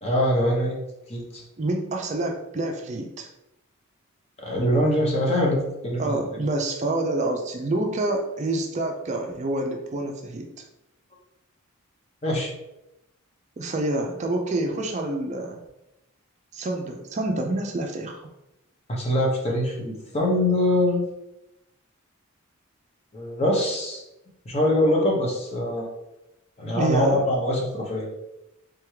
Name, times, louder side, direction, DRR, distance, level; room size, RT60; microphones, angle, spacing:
voice 1, 0.0-0.8 1.1-1.4 4.4-6.2 12.2-12.5 18.9-21.0 23.1-24.0 24.5-25.9 26.6-28.1, left 1 dB, 30° left, -1 dB, 0.8 m, -23 dB
voice 2, 1.6-3.3 6.0-10.5 13.6-15.6 16.5-18.3 26.7-27.3, right 2 dB, 30° right, 3 dB, 0.4 m, -27 dB
3.7 x 3.4 x 3.1 m, 0.91 s
head